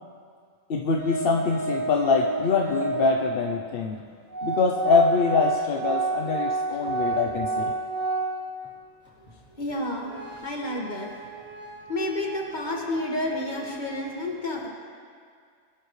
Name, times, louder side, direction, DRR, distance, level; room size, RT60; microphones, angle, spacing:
voice 1, 0.7-4.0 4.4-7.7, left 4 dB, 50° left, 1 dB, 0.7 m, -24 dB
Organ, 1.0-3.2 4.0-4.1 4.3-8.7 9.1-9.2 9.6-14.0, right 3 dB, 10° left, 4.0 m, -31 dB
voice 2, 9.6-10.1 10.4-11.1 11.9-14.7, left 1 dB, 30° left, -1 dB, 1.9 m, -30 dB
22.5 x 12.0 x 3.2 m, 2.1 s
omnidirectional pair, 1.5 m